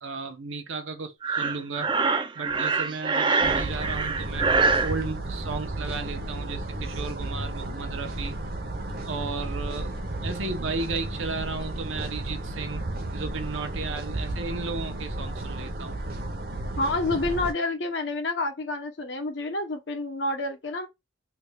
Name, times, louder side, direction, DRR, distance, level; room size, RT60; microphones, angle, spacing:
voice 1, 0.0-1.9 2.3-4.5 4.8-8.4 9.0-10.0 10.2-12.8 13.1-16.0, right 4 dB, 80° right, 0.8 m, -34 dB
Breathing, 1.2-5.0, right 4 dB, 25° right, 0.3 m, -24 dB
sound 1, 3.4-17.5, right 1 dB, 50° right, 0.7 m, -33 dB
voice 2, 16.8-20.9, left 2 dB, 65° left, 0.9 m, -28 dB
3.4 x 2.3 x 3.3 m
head